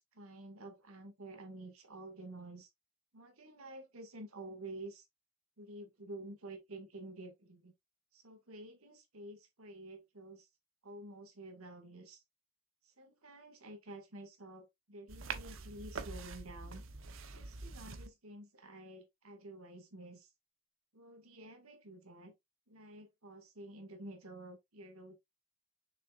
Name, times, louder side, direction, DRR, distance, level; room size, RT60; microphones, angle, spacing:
voice 1, 0.0-2.7 3.1-5.1 5.6-7.7 8.1-10.5 10.8-12.2 12.8-16.8 17.3-20.3 20.9-22.3 22.7-25.2, right 2 dB, 85° right, 2.1 m, -50 dB
sound 1, 15.1-18.1, right 4 dB, 65° right, 1.0 m, -45 dB
6.9 x 6.2 x 2.5 m
head